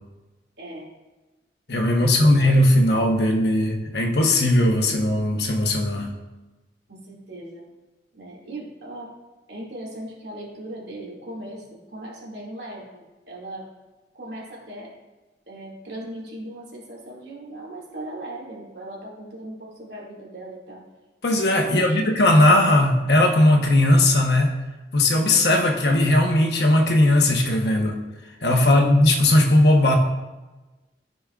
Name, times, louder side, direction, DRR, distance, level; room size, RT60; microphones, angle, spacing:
voice 1, 0.6-0.9 2.0-2.5 6.9-7.7 8.1-9.2 9.5-13.7 14.1-14.9 15.5-20.8 21.6-22.1 28.7-29.0, right 1 dB, 75° right, -4 dB, 2.3 m, -38 dB
voice 2, 1.7-6.1 21.2-24.5 24.9-28.0 28.4-30.0, left 1 dB, 70° left, 2 dB, 1.1 m, -18 dB
14.0 x 5.2 x 2.4 m, 1.1 s
head